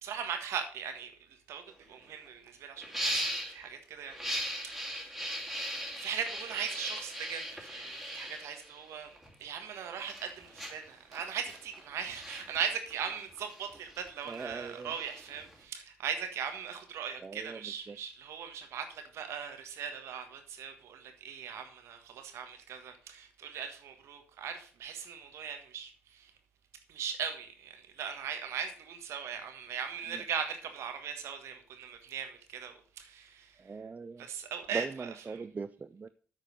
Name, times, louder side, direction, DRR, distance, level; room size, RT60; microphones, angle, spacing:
voice 1, 0.0-5.3 5.9-26.3 26.9-33.8 34.2-35.4, right 7 dB, 65° right, 1.5 m, -39 dB
sound 1, 1.7-1.8 2.0-2.3 2.8-3.6 4.1-9.3 9.8-15.6, equal, ahead, 2.9 m, -39 dB
voice 2, 14.3-14.9 17.2-17.6 17.9-18.0 33.6-34.3 34.7-36.1, right 4 dB, 30° right, 0.4 m, -40 dB
8.6 x 4.9 x 5.3 m
hypercardioid pair, 50°, 5 cm